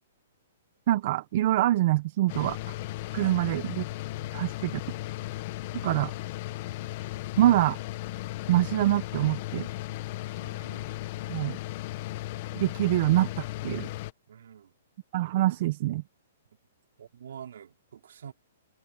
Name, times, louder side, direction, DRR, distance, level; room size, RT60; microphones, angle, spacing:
voice 1, 0.9-2.7 3.1-3.8 4.3-4.7 5.8-6.1 7.4-7.8 8.5-9.7 11.3-11.6 12.5-13.3 13.6-13.9 15.1-16.0, right 15 dB, 40° right, 0.9 m, -25 dB
sound 1, 2.3-14.1, left 16 dB, 35° left, 1.2 m, -36 dB
voice 2, 3.1-3.4 4.2-4.6 10.4-11.0 12.9-13.0 14.3-14.7 17.0-18.3, right 8 dB, 70° right, 4.2 m, -47 dB
hypercardioid pair, 165°, 0 cm